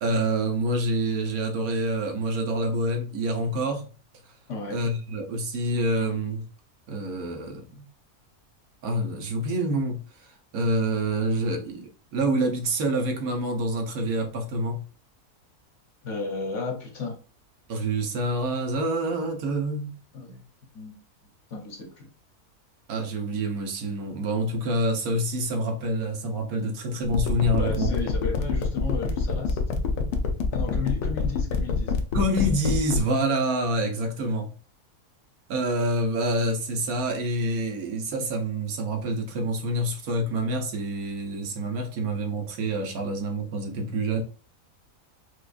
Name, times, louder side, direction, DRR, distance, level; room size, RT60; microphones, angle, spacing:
voice 1, 0.0-3.8 4.7-6.4 6.9-7.8 8.8-14.8 17.7-19.9 22.9-27.9 32.1-34.5 35.5-44.2, right 1 dB, 75° right, 1.2 m, -27 dB
voice 2, 4.5-4.9 16.0-17.2 20.1-20.4 20.7-21.0 21.5-22.1 27.6-29.6 30.5-31.9, left 4 dB, 60° left, 1.0 m, -33 dB
sound 1, 27.0-33.0, left 6 dB, 90° left, 1.1 m, -26 dB
4.7 x 2.3 x 2.4 m
omnidirectional pair, 1.6 m